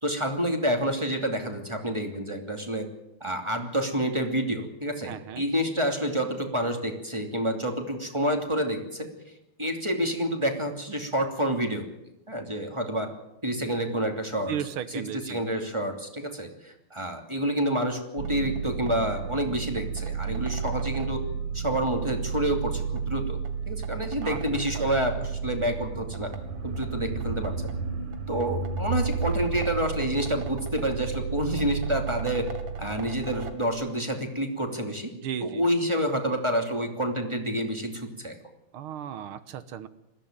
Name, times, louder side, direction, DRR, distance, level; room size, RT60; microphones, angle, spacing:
voice 1, 0.0-2.9 3.2-9.1 9.6-11.9 12.3-13.1 13.4-14.6 14.9-21.2 21.5-23.4 23.7-26.3 26.6-27.5 28.3-32.5 32.8-35.1 35.4-38.4, equal, 15° right, 4 dB, 2.8 m, -28 dB
voice 2, 5.0-5.4 14.5-15.4 24.2-24.4 24.7-24.9 35.2-35.7 38.7-39.9, right 9 dB, 85° right, 14 dB, 1.9 m, -35 dB
sound 1, 18.2-33.5, right 6 dB, 65° right, 2.6 m, -32 dB
21.0 x 15.0 x 8.9 m, 0.90 s
omnidirectional pair, 2.3 m